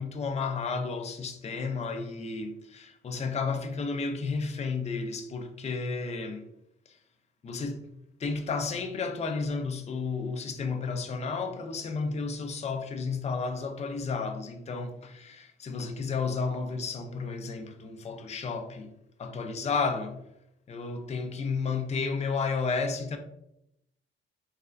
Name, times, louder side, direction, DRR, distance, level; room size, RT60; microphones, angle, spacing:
voice 1, 0.0-6.5 6.9-7.0 7.4-7.9 8.2-18.9 19.2-20.2 20.7-23.2, left 4 dB, 35° left, 0.5 m, -32 dB
3.6 x 3.3 x 2.5 m
cardioid pair, 90°, 20 cm